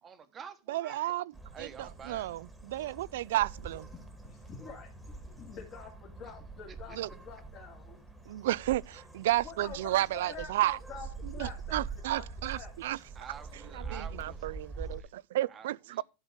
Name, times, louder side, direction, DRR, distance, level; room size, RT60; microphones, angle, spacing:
voice 1, 0.0-1.0 1.5-2.3 6.7-7.0 13.1-15.1 15.5-16.0, right 7 dB, 20° right, 1.3 m, -49 dB
voice 2, 0.7-1.3 1.6-3.9 7.0-7.1 8.3-10.8 11.4-13.0 13.7-16.0, right 15 dB, 80° right, 0.4 m, -32 dB
sound 1, 1.3-15.0, right 4 dB, 5° right, 1.9 m, -45 dB
voice 3, 3.9-8.0 9.4-12.2 12.5-12.7, left 6 dB, 30° left, 2.3 m, -47 dB
12.0 x 5.3 x 6.3 m
supercardioid pair, 160°, 0 cm